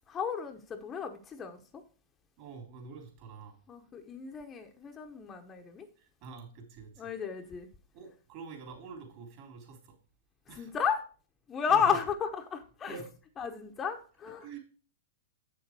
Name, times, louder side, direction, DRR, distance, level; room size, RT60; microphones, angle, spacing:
voice 1, 0.1-1.8 3.7-5.9 7.0-7.7 10.6-11.0 11.5-13.0 13.4-14.5, left 7 dB, 20° left, 0.9 m, -33 dB
voice 2, 2.4-3.6 6.0-7.1 7.9-9.9 10.5-10.7 11.7-12.0 12.9-13.1 14.4-14.6, right 5 dB, 45° right, 3.6 m, -46 dB
7.6 x 6.6 x 4.6 m
hypercardioid pair, 125°, 0 cm